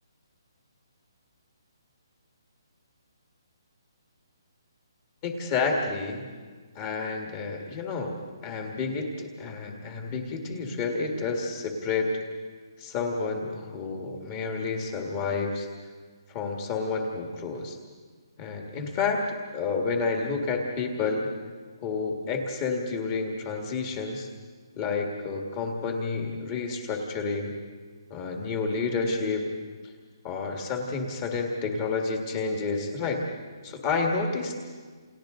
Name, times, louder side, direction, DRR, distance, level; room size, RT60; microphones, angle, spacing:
voice 1, 5.2-6.3 6.8-8.2 8.4-12.1 12.8-15.7 16.3-17.8 18.4-19.2 19.5-21.3 21.8-24.3 24.8-27.5 28.1-29.5 30.2-33.2 33.6-34.6, left 4 dB, 15° left, 1 dB, 1.8 m, -30 dB
29.0 x 27.5 x 3.8 m, 1.5 s
hypercardioid pair, 180°, 2 cm